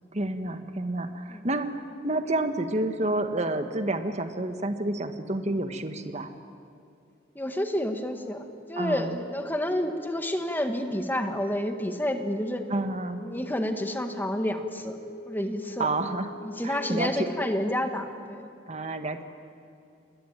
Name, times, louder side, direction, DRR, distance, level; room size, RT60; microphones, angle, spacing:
voice 1, 0.1-6.3 8.8-9.2 12.7-13.2 15.8-16.3 16.6-17.3 18.7-19.2, right 2 dB, 40° right, 8 dB, 1.6 m, -29 dB
voice 2, 7.3-12.6 13.2-15.0 15.3-15.9 16.4-18.5, left 1 dB, 10° left, 6 dB, 1.7 m, -29 dB
Wind instrument woodwind instrument, 8.1-17.8, left 2 dB, 45° left, 1.2 m, -46 dB
28.5 x 21.0 x 9.1 m, 2.5 s
head